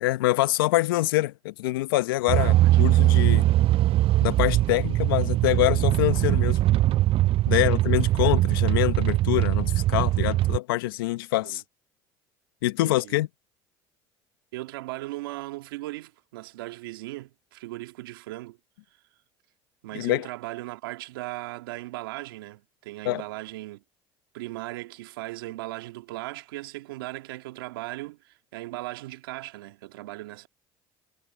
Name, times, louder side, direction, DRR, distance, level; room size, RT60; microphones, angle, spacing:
voice 1, 0.0-3.5 4.2-6.6 7.5-11.6 12.6-13.3 19.9-20.3 23.0-23.2, left 18 dB, 85° left, 1.2 m, -25 dB
sound 1, 2.3-10.6, right 15 dB, 55° right, 0.4 m, -21 dB
voice 2, 2.4-3.0 3.5-3.8 7.5-7.8 11.4-11.6 12.8-13.2 14.5-18.6 19.8-23.8 24.3-30.5, right 19 dB, 85° right, 1.9 m, -38 dB
hypercardioid pair, 70°, 12 cm